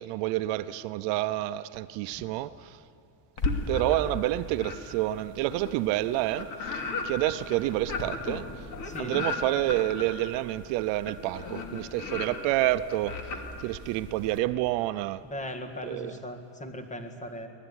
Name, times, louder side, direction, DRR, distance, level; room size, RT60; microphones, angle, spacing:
voice 1, 0.0-2.8 3.7-8.5 9.0-13.2 13.6-15.2 15.8-16.2, right 16 dB, 60° right, 0.7 m, -29 dB
sound 1, 3.4-4.2 4.6-14.4, left 3 dB, 40° left, 2.7 m, -35 dB
voice 2, 8.8-9.2 15.2-17.5, left 1 dB, 15° left, 2.0 m, -38 dB
24.5 x 19.5 x 9.7 m
cardioid pair, 165°, 48 cm